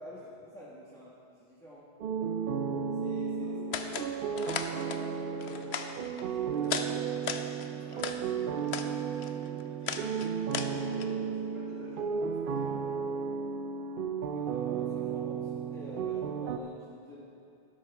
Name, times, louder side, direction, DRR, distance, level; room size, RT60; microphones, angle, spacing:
voice 1, 0.0-1.9 2.9-3.6 14.2-17.3, left 1 dB, 5° left, -8 dB, 1.5 m, -48 dB
sound 1, 2.0-16.6, right 6 dB, 65° right, 0.7 m, -34 dB
voice 2, 3.4-5.9 6.2-10.2 10.7-12.7, right 1 dB, 30° right, -8 dB, 2.6 m, -49 dB
sound 2, 3.7-4.1 4.4-5.0 5.4-6.3 6.6-6.9 7.2-8.2 8.6-8.9 9.2-11.0, left 7 dB, 90° left, 0.9 m, -36 dB
12.5 x 10.5 x 3.5 m, 2.6 s
omnidirectional pair, 1.1 m